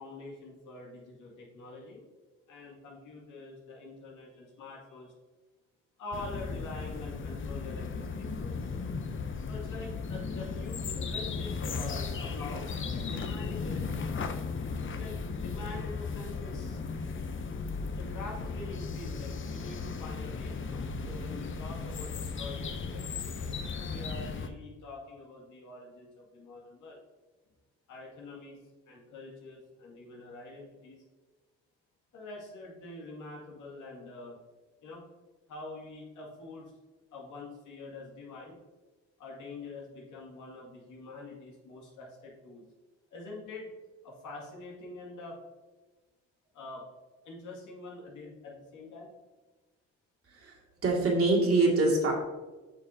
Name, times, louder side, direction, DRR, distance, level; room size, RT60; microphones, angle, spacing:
voice 1, 0.0-2.1 2.5-5.1 6.0-8.6 9.5-14.3 14.8-16.8 17.9-23.5 23.9-27.0 27.9-31.0 32.1-34.4 34.8-35.1 35.5-36.7 37.1-38.6 39.2-42.6 43.1-43.7 44.0-45.4 46.5-46.8 47.2-49.1, left 2 dB, 80° left, -3 dB, 2.2 m, -45 dB
sound 1, 6.1-24.5, left 4 dB, 40° left, 0.7 m, -36 dB
voice 2, 50.8-52.1, right 2 dB, 50° right, -2 dB, 2.2 m, -24 dB
8.6 x 5.5 x 2.7 m, 1.2 s
cardioid pair, 90°, 30 cm